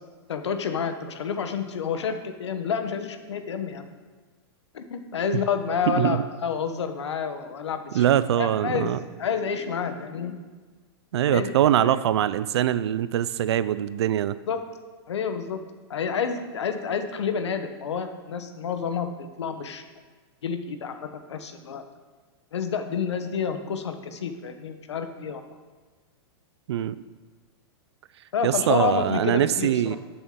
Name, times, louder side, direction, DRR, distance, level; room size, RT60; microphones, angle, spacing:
voice 1, 0.3-3.9 4.7-8.0 8.3-8.9 9.2-10.3 11.3-12.0 14.5-14.6 15.1-15.6 15.9-19.8 20.4-21.8 22.5-25.4 28.3-30.0, left 6 dB, 85° left, 8 dB, 1.1 m, -29 dB
voice 2, 5.9-6.2 7.9-9.0 11.1-14.4 26.7-27.0 28.4-30.0, right 11 dB, 75° right, 16 dB, 0.5 m, -23 dB
12.0 x 6.9 x 3.8 m, 1.4 s
hypercardioid pair, 130°, 14 cm